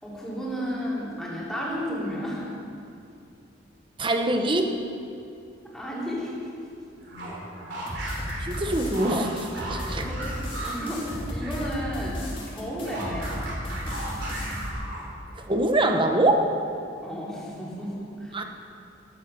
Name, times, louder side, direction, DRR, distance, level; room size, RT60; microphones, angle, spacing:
voice 1, 0.0-2.5 5.7-6.3 9.8-13.4 17.0-18.4, equal, 5° left, -7 dB, 3.5 m, -33 dB
voice 2, 4.0-4.8 8.4-10.0 15.5-16.5 18.3-18.4, right 1 dB, 25° right, 4 dB, 1.1 m, -24 dB
sound 1, 7.0-11.7 12.0-15.3, right 1 dB, 65° right, 4.3 m, -37 dB
sound 2, 7.9-14.7, equal, 30° left, 2.6 m, -34 dB
13.5 x 10.5 x 7.0 m, 2.5 s
head